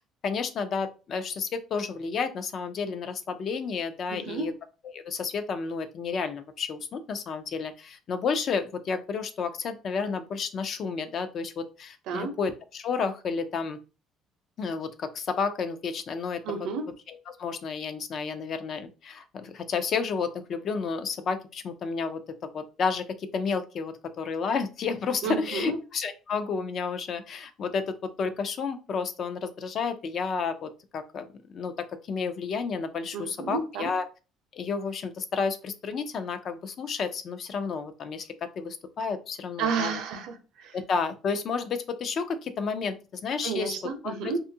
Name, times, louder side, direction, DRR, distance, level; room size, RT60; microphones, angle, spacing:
voice 1, 0.2-4.5 4.8-13.8 14.6-16.4 17.1-22.2 22.5-31.7 32.1-34.0 34.5-40.0 40.7-43.8 44.0-44.3, left 5 dB, 45° left, 10 dB, 0.4 m, -31 dB
voice 2, 4.1-4.5 12.1-12.3 16.4-16.8 25.2-25.8 33.1-33.9 39.6-40.7 43.4-44.4, right 5 dB, 75° right, 7 dB, 0.6 m, -31 dB
2.5 x 2.3 x 2.7 m, 0.33 s
cardioid pair, 135°, 0 cm